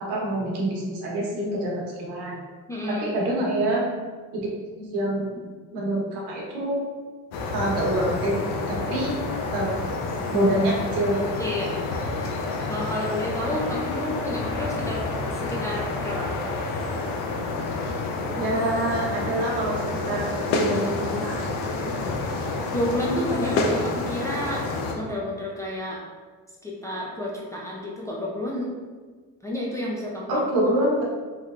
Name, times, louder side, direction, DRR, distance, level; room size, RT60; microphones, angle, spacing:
voice 1, 0.1-2.4 3.0-3.8 4.4-4.5 4.8-5.4 5.7-6.8 7.5-8.3 8.7-9.2 9.5-9.7 10.3-11.4 18.3-19.8 20.0-21.4 21.8-21.9 30.3-31.0, right 1 dB, 85° right, -3 dB, 1.0 m, -26 dB
voice 2, 2.7-3.1 11.4-11.8 12.7-16.3 22.7-24.7 24.9-26.0 26.6-28.7 29.4-30.4, left 1 dB, 10° left, -5 dB, 0.3 m, -30 dB
sound 1, 7.3-24.9, left 3 dB, 80° left, 0.6 m, -29 dB
3.1 x 3.0 x 2.4 m, 1.4 s
cardioid pair, 125°, 40 cm